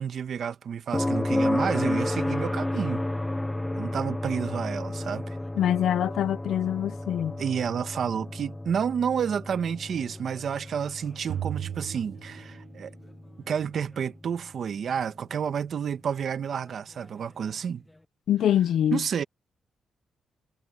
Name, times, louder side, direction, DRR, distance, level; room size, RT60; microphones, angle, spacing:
voice 1, 0.0-3.0 3.7-5.4 7.4-12.9 13.5-17.8 18.9-19.2, right 7 dB, 60° right, 1.5 m, -30 dB
sound 1, 0.9-14.8 17.0-17.1, left 1 dB, 10° left, 0.9 m, -32 dB
voice 2, 5.5-7.4 18.3-19.0, left 10 dB, 80° left, 0.6 m, -24 dB
sound 2, 11.3-13.1, right 10 dB, 75° right, 0.7 m, -35 dB
cardioid pair, 105°, 0 cm